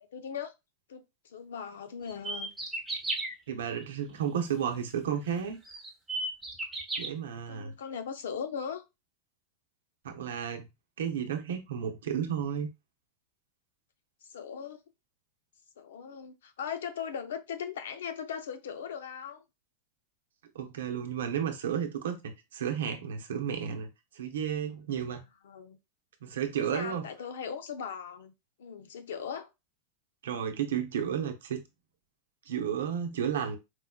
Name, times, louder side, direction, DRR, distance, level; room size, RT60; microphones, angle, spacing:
voice 1, 0.1-0.5 0.9-2.5 7.5-8.8 14.3-14.8 15.8-19.4 25.4-25.8 26.5-28.3 28.6-29.5, left 7 dB, 80° left, 0.6 m, -39 dB
sound 1, 2.1-3.3 5.0-5.1 5.6-7.1, right 2 dB, 10° right, 1.0 m, -34 dB
voice 2, 3.5-5.6 7.0-7.7 10.0-10.7 11.0-12.7 20.5-23.9 24.1-25.2 26.2-27.1 30.2-31.6 32.5-33.6, right 8 dB, 85° right, 0.7 m, -32 dB
4.5 x 2.2 x 2.2 m
hypercardioid pair, 120°, 0 cm